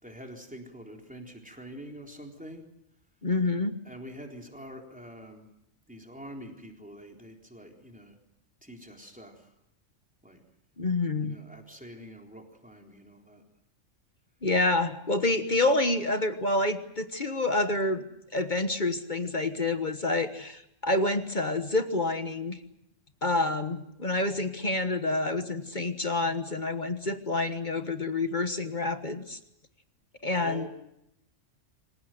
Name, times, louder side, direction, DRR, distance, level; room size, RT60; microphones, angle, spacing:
voice 1, 0.0-2.6 3.9-5.5 5.9-8.2 8.6-9.5 10.2-10.4 11.2-13.4 30.3-30.7, equal, 5° right, 1 dB, 3.9 m, -45 dB
voice 2, 3.2-3.8 10.8-11.3 14.4-18.0 18.3-22.6 23.2-29.4 30.2-30.7, left 2 dB, 40° left, 8 dB, 1.4 m, -28 dB
26.0 x 16.5 x 9.3 m, 0.81 s
omnidirectional pair, 1.3 m